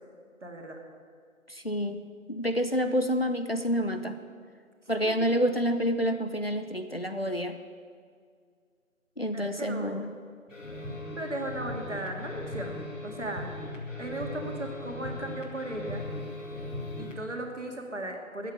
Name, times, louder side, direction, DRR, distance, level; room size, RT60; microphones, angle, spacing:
voice 1, 0.4-0.8 5.0-5.1 9.3-10.0 11.2-13.5 14.0-16.0 17.0-18.5, right 1 dB, 55° right, 2 dB, 2.1 m, -36 dB
voice 2, 1.5-2.0 2.3-4.2 4.9-7.6 9.2-10.1, equal, 45° left, 8 dB, 0.6 m, -28 dB
sound 1, 10.5-17.2, left 1 dB, 60° left, 2.4 m, -38 dB
10.0 x 8.4 x 9.1 m, 2.1 s
figure-of-eight pair, 175°, 42 cm